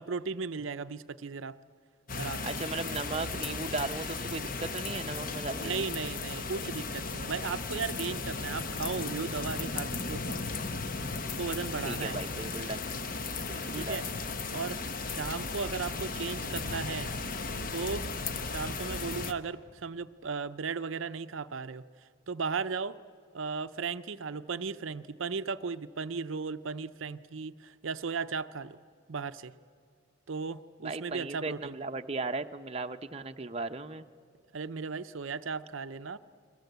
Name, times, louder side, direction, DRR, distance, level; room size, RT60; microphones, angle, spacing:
voice 1, 0.0-1.6 2.1-2.6 5.6-10.4 11.4-12.2 13.7-14.1 14.5-14.8 15.1-17.1 17.7-18.1 18.4-21.8 22.3-23.0 23.3-28.8 29.1-29.5 30.3-31.8 34.5-36.2, right 5 dB, 70° right, 11 dB, 0.6 m, -36 dB
sound 1, 2.1-19.3, left 4 dB, 40° left, 1.0 m, -36 dB
voice 2, 2.4-5.8 11.8-12.8 13.5-14.0 30.8-34.0, right 3 dB, 30° right, 6 dB, 0.7 m, -36 dB
sound 2, 4.4-13.6, left 1 dB, 60° left, 3.3 m, -58 dB
29.5 x 22.0 x 8.0 m, 2.1 s
head